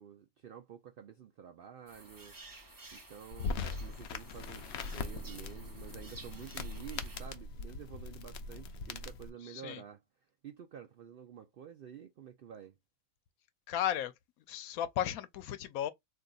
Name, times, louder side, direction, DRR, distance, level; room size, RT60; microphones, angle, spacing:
voice 1, 0.0-2.6 2.9-12.7, right 8 dB, 70° right, 0.5 m, -50 dB
sound 1, 1.9-7.3, right 2 dB, 20° right, 0.6 m, -54 dB
sound 2, 3.3-9.3, left 4 dB, 65° left, 0.8 m, -41 dB
voice 2, 9.4-9.8 13.7-14.1 14.5-15.9, left 10 dB, 85° left, 1.0 m, -34 dB
3.9 x 2.7 x 2.2 m
omnidirectional pair, 1.4 m